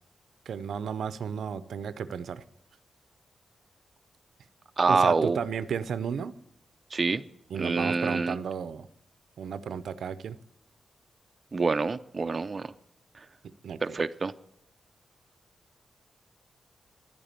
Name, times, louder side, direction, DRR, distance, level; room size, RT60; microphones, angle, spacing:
voice 1, 0.5-2.4 4.9-6.3 7.5-8.9 9.4-10.4 13.4-13.8, right 7 dB, 80° right, 15 dB, 0.6 m, -33 dB
voice 2, 4.8-5.4 6.9-7.2 7.6-8.4 11.5-12.7 13.1-13.3 13.8-14.3, right 4 dB, 40° right, 10 dB, 0.5 m, -26 dB
11.0 x 9.3 x 8.8 m, 0.75 s
cardioid pair, 90°, 0 cm